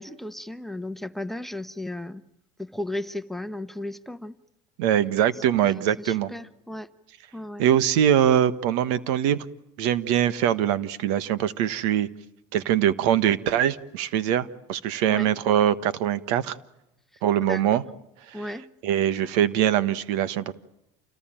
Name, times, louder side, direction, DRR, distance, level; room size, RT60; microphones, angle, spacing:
voice 1, 0.0-2.2 2.6-4.3 5.6-6.9 7.3-7.6 15.1-15.3 17.4-17.8 18.3-18.7, left 1 dB, ahead, 15 dB, 1.1 m, -35 dB
voice 2, 4.8-6.3 7.6-9.4 9.8-12.1 12.5-16.6 17.2-17.8 18.3-18.4 18.8-20.5, right 10 dB, 80° right, 16 dB, 1.4 m, -23 dB
29.0 x 19.0 x 9.1 m, 0.89 s
supercardioid pair, 120°, 16 cm